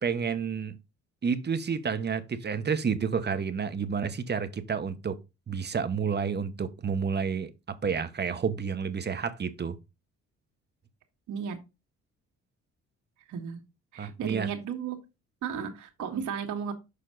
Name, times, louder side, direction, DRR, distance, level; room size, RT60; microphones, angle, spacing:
voice 1, 0.0-0.7 1.2-5.2 5.5-7.5 7.8-9.8 14.0-14.5, right 6 dB, 35° right, 0.9 m, -30 dB
voice 2, 11.3-11.6 13.3-13.6 13.9-15.0 15.4-16.7, right 7 dB, 75° right, 1.9 m, -34 dB
6.8 x 5.3 x 3.9 m
cardioid pair, 90°, 30 cm